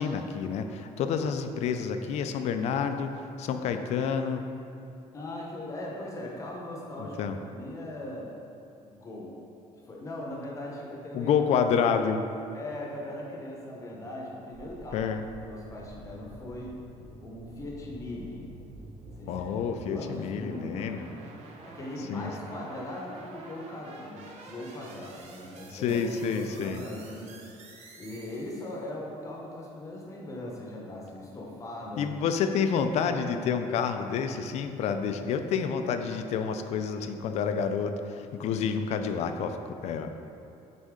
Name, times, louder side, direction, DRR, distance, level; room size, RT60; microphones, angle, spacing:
voice 1, 0.0-3.1 3.4-4.5 7.0-7.4 11.1-12.2 14.9-15.2 19.3-21.1 22.1-22.3 25.7-26.8 32.0-40.2, left 6 dB, 60° left, 7 dB, 0.4 m, -29 dB
voice 2, 5.1-7.2 7.4-8.3 8.8-9.4 9.8-11.3 12.5-15.0 15.4-16.8 17.2-18.5 19.2-19.5 19.8-21.2 21.6-26.0 26.3-27.4 27.9-32.3, left 1 dB, 25° left, -2 dB, 0.8 m, -39 dB
sound 1, 14.5-28.9, right 2 dB, 60° right, 0.8 m, -48 dB
6.3 x 4.2 x 3.7 m, 2.7 s
cardioid pair, 170°, 12 cm